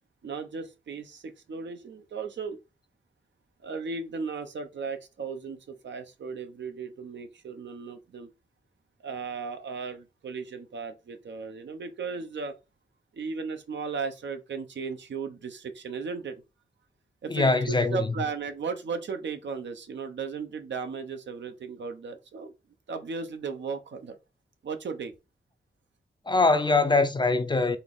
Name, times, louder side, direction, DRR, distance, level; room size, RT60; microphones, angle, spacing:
voice 1, 0.2-2.6 3.6-8.3 9.0-12.5 13.1-16.4 17.2-22.5 22.9-24.2 24.6-25.1, right 5 dB, 70° right, 0.8 m, -36 dB
voice 2, 17.3-18.1 26.3-27.8, left 3 dB, 25° left, 0.5 m, -23 dB
4.1 x 2.5 x 3.6 m
wide cardioid pair, 90°, 19 cm